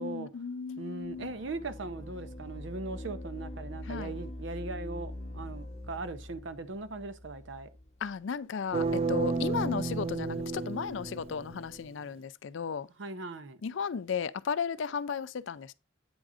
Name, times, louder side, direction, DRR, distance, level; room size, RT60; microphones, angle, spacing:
voice 1, 0.0-1.3 3.9-4.2 8.0-12.9 13.6-15.7, left 6 dB, 70° left, 0.4 m, -35 dB
voice 2, 0.8-7.7 13.0-13.6, right 3 dB, 65° right, 0.7 m, -39 dB
sound 1, 1.0-8.2, left 1 dB, 35° left, 0.9 m, -43 dB
sound 2, 8.7-11.8, right 3 dB, 30° right, 0.5 m, -32 dB
8.8 x 3.7 x 4.8 m
head